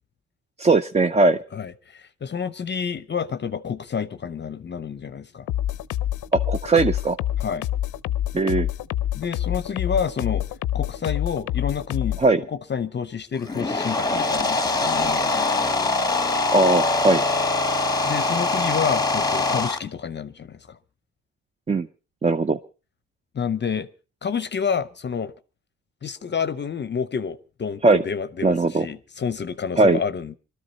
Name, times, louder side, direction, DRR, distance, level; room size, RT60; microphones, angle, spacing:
voice 1, 0.6-1.4 6.3-7.2 8.3-8.7 12.2-12.4 16.5-17.2 21.7-21.9 22.2-22.6 27.8-28.0 28.4-28.9 29.8-30.0, right 3 dB, 20° right, 0.7 m, -19 dB
voice 2, 1.5-5.5 7.4-7.7 9.1-10.5 10.7-12.2 12.5-15.6 18.0-20.8 23.3-23.9 24.2-25.3 26.0-30.4, left 6 dB, 35° left, 0.7 m, -29 dB
sound 1, 5.5-12.3, left 12 dB, 85° left, 0.7 m, -27 dB
sound 2, 13.4-19.8, left 3 dB, 10° left, 1.1 m, -23 dB
22.0 x 13.0 x 4.1 m
cardioid pair, 90°, 30 cm